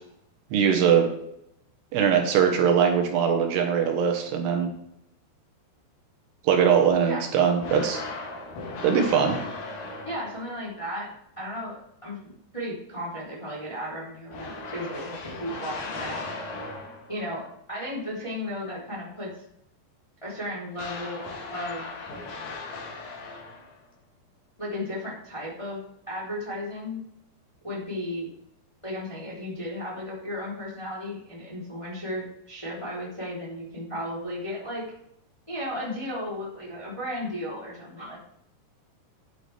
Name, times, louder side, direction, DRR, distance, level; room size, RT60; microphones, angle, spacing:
voice 1, 0.5-1.1 1.9-4.7 6.4-8.0 8.8-9.4, right 7 dB, 75° right, 3 dB, 3.1 m, -21 dB
sound 1, 7.6-10.6 14.3-17.2 20.7-23.8, left 3 dB, 80° left, 4.8 m, -37 dB
voice 2, 10.0-11.1 11.4-16.3 17.1-19.3 20.2-21.9 24.6-25.8 26.1-27.0 27.6-28.3 28.8-34.8 35.5-38.2, left 1 dB, 10° left, -6 dB, 2.7 m, -34 dB
10.5 x 9.7 x 3.4 m, 0.76 s
omnidirectional pair, 5.1 m